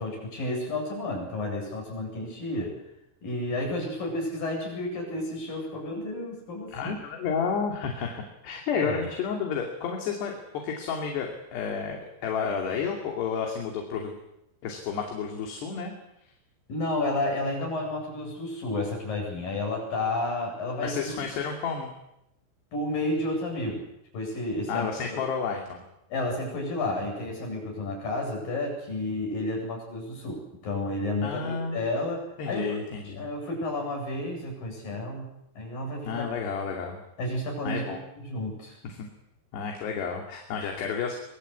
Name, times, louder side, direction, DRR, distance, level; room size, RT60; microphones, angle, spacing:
voice 1, 0.0-2.8 3.2-6.9 8.7-9.1 16.7-21.1 22.7-23.9 24.1-24.9 26.1-32.8 33.2-35.3 35.6-36.2 37.2-38.8, left 2 dB, 45° left, 1 dB, 9.6 m, -31 dB
voice 2, 6.7-14.1 14.6-15.9 20.8-21.9 24.7-25.8 31.2-31.8 32.4-33.3 36.0-37.0 37.6-38.0 39.0-39.1 39.5-41.2, left 6 dB, 60° left, 2 dB, 4.5 m, -31 dB
25.0 x 22.5 x 8.5 m, 0.83 s
omnidirectional pair, 5.9 m